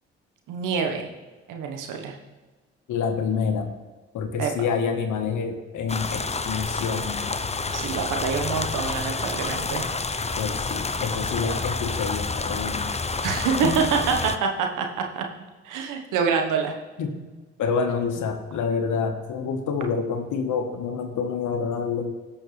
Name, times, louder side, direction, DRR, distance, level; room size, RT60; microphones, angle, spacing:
voice 1, 0.5-1.1 1.5-2.2 4.4-4.5 7.7-9.9 13.2-14.9 15.1-15.2 15.6-16.7, right 6 dB, 80° right, 3 dB, 1.3 m, -26 dB
voice 2, 2.9-3.7 4.1-7.2 10.4-12.8 13.6-13.8 17.0-17.2 17.6-22.1, left 5 dB, 75° left, 6 dB, 1.4 m, -27 dB
sound 1, 5.9-14.4, left 3 dB, 20° left, 0.7 m, -29 dB
16.5 x 6.3 x 3.3 m, 1.3 s
hypercardioid pair, 45°, 31 cm